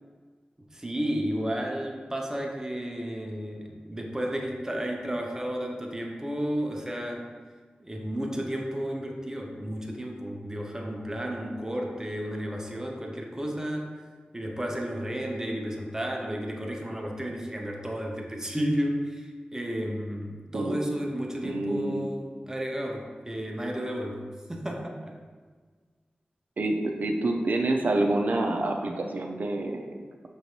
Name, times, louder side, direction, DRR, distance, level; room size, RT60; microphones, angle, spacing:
voice 1, 0.7-7.4 7.8-13.9 14.3-25.2, equal, 20° right, 0 dB, 0.6 m, -32 dB
voice 2, 21.4-22.1 26.6-29.8, right 2 dB, 65° right, 3 dB, 0.5 m, -27 dB
6.0 x 3.1 x 2.7 m, 1.5 s
wide cardioid pair, 80°, 3 cm